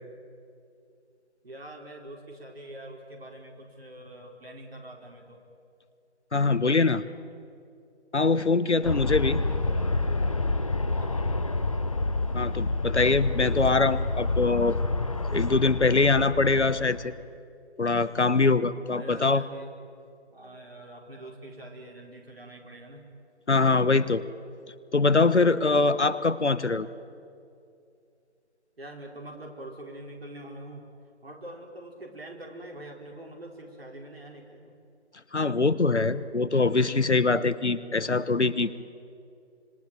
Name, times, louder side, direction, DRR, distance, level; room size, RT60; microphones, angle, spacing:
voice 1, 1.4-5.4 9.1-9.9 10.9-11.5 18.9-19.7 20.3-23.0 28.8-30.9 31.2-34.7, right 1 dB, 60° right, 1 dB, 4.9 m, -44 dB
voice 2, 6.3-7.0 8.1-9.4 12.3-14.8 15.3-17.1 17.8-19.4 23.5-24.2 24.9-26.9 35.3-38.9, left 3 dB, 75° left, 16 dB, 1.2 m, -23 dB
Aircraft, 8.8-17.2, left 2 dB, 30° left, 0.7 m, -28 dB
26.0 x 23.5 x 9.2 m, 2.5 s
figure-of-eight pair, 155°, 34 cm